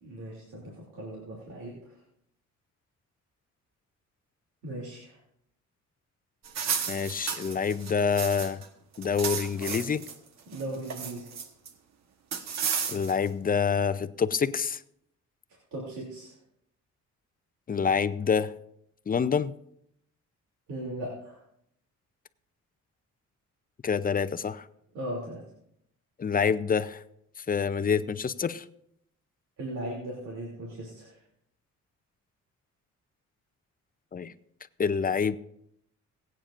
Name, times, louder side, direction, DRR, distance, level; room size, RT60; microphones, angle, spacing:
voice 1, 0.0-1.9 4.6-5.2 10.5-11.3 15.7-16.3 20.7-21.4 24.9-25.4 29.6-31.2, right 1 dB, 85° right, -3 dB, 2.9 m, -38 dB
sound 1, 6.4-8.7 8.9-10.1 10.5-11.7 12.3-13.3, right 7 dB, 60° right, 1.3 m, -33 dB
voice 2, 6.9-8.6 9.0-10.0 12.9-14.8 17.7-18.5 19.1-19.5 23.8-24.7 26.2-27.0 27.5-28.6 34.1-34.3 34.8-35.4, left 6 dB, 30° left, 14 dB, 0.6 m, -27 dB
22.0 x 8.9 x 2.5 m, 0.73 s
cardioid pair, 90°, 30 cm